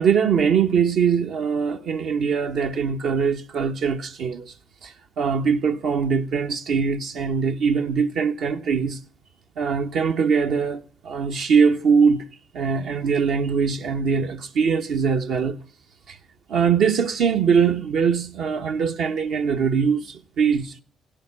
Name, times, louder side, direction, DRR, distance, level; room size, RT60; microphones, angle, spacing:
voice 1, 0.0-4.5 4.8-9.0 9.6-12.3 12.5-15.6 16.1-16.2 16.5-20.8, right 6 dB, 75° right, 1.1 m, -22 dB
16.0 x 11.5 x 7.3 m
cardioid pair, 75°, 0 cm